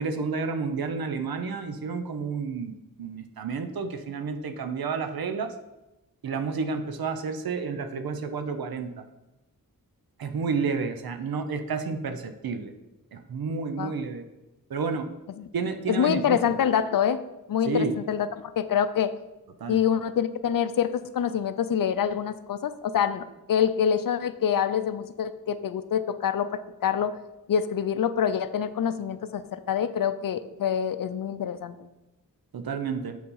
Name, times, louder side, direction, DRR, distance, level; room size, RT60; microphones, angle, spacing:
voice 1, 0.0-5.5 6.2-9.0 10.2-12.7 13.1-14.2 14.7-15.1 15.5-16.6 17.7-18.0 19.6-19.8 32.5-33.2, right 4 dB, 90° right, 7 dB, 0.7 m, -30 dB
voice 2, 15.9-17.2 17.5-19.1 19.7-27.1 27.5-31.9, left 8 dB, 70° left, 12 dB, 0.5 m, -26 dB
6.9 x 4.2 x 5.5 m, 1.0 s
wide cardioid pair, 65°, 35 cm